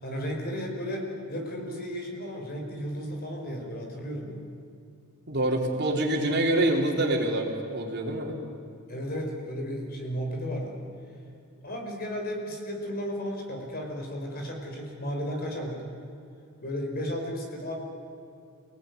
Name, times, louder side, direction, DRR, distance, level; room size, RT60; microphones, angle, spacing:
voice 1, 0.0-4.4 8.9-10.8 11.6-15.8 16.6-17.7, equal, 45° left, 1 dB, 5.0 m, -34 dB
voice 2, 5.3-8.4, right 1 dB, 50° right, 1 dB, 3.6 m, -26 dB
27.5 x 19.0 x 9.5 m, 2.7 s
head